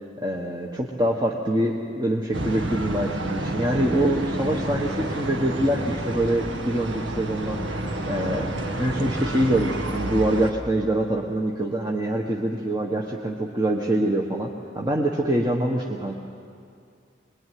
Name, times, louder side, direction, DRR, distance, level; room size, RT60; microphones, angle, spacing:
voice 1, 0.2-8.5 8.8-16.1, right 1 dB, 20° right, -1 dB, 1.4 m, -25 dB
sound 1, 2.3-10.5, right 1 dB, 80° right, 2.0 m, -30 dB
25.0 x 21.5 x 9.5 m, 2.4 s
head